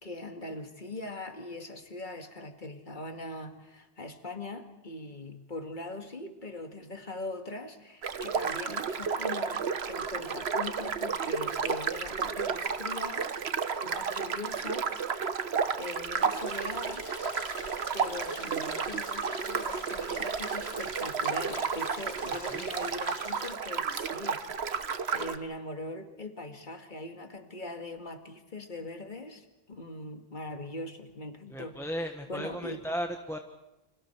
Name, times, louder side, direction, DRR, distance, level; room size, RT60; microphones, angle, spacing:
voice 1, 0.0-14.9 15.8-17.1 17.9-24.8 25.1-31.8 32.3-32.8, left 2 dB, 50° left, 5 dB, 2.2 m, -41 dB
sound 1, 8.0-25.4, right 6 dB, 80° right, 1.3 m, -32 dB
sound 2, 16.4-23.5, left 3 dB, 85° left, 1.7 m, -45 dB
voice 2, 31.5-33.4, equal, 5° left, 5 dB, 1.2 m, -35 dB
29.5 x 26.0 x 4.5 m, 0.99 s
omnidirectional pair, 1.1 m